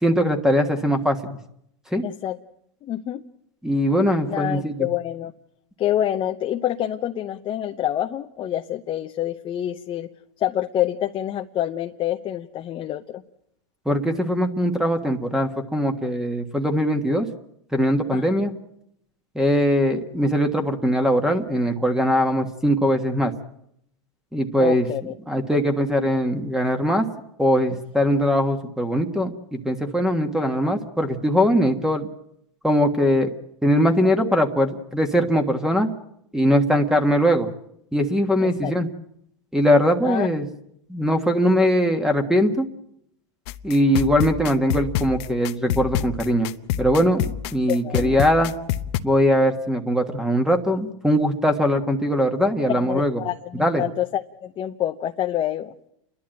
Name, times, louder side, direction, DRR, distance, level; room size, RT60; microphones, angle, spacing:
voice 1, 0.0-1.4 1.9-2.0 3.6-4.9 13.8-17.3 17.7-18.5 19.3-23.3 24.3-24.9 25.3-27.0 27.4-32.1 32.6-33.3 33.6-35.9 36.3-37.5 37.9-38.9 39.5-40.5 40.9-42.7 43.6-46.5 46.8-48.5 49.0-53.2 53.6-53.8, equal, 5° right, 6 dB, 1.5 m, -21 dB
voice 2, 2.0-2.4 2.8-3.2 4.3-5.3 5.8-10.1 10.4-13.2 18.1-18.2 24.6-25.1 38.4-38.7 40.0-40.3 47.7-48.2 52.7-55.7, left 12 dB, 30° left, 6 dB, 0.8 m, -27 dB
sound 1, 43.5-49.0, left 11 dB, 60° left, 0.9 m, -28 dB
29.5 x 11.5 x 9.0 m, 0.75 s
supercardioid pair, 125°, 16 cm